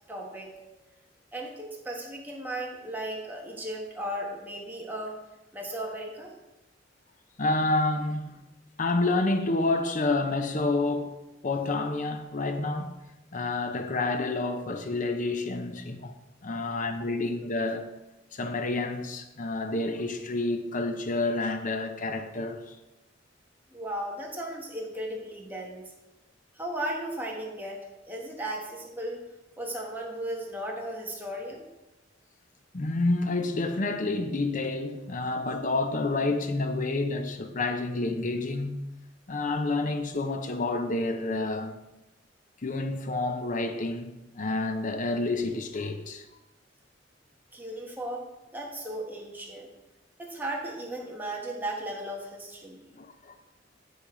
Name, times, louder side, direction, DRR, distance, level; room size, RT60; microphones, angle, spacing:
voice 1, 0.1-0.5 1.3-5.2 5.5-6.3 23.7-25.9 26.5-29.2 29.6-31.6 47.5-48.3 48.5-49.7 50.2-52.8, right 1 dB, 10° right, 1.5 m, -36 dB
voice 2, 7.4-8.4 8.8-11.2 11.4-12.9 13.3-16.2 16.4-17.9 18.3-22.8 32.7-38.9 39.3-41.8 42.6-46.3 52.9-53.4, left 2 dB, 45° left, 0.7 m, -29 dB
10.0 x 4.1 x 5.0 m
head